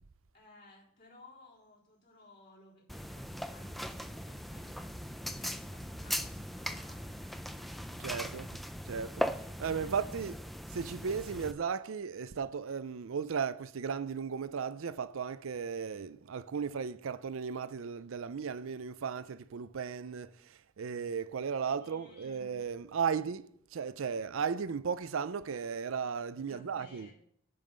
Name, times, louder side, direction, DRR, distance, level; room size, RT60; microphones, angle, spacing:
voice 1, 0.3-4.9 5.4-8.3 9.6-10.2 21.8-22.5 26.5-27.1, left 1 dB, 50° left, 4.0 m, -59 dB
sound 1, 2.9-11.5, equal, ahead, 0.4 m, -39 dB
voice 2, 8.0-8.5 8.9-10.4 10.7-27.1, right 6 dB, 70° right, 0.5 m, -36 dB
10.5 x 5.6 x 6.6 m
head